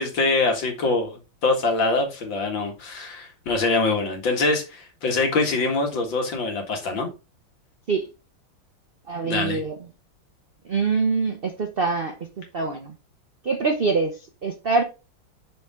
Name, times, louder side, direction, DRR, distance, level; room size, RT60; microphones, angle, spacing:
voice 1, 0.0-7.1 9.2-9.6, left 3 dB, 70° left, 2.5 m, -24 dB
voice 2, 9.1-9.8 10.7-12.9 13.4-14.8, right 4 dB, 75° right, 0.5 m, -25 dB
6.2 x 5.6 x 3.6 m
omnidirectional pair, 2.2 m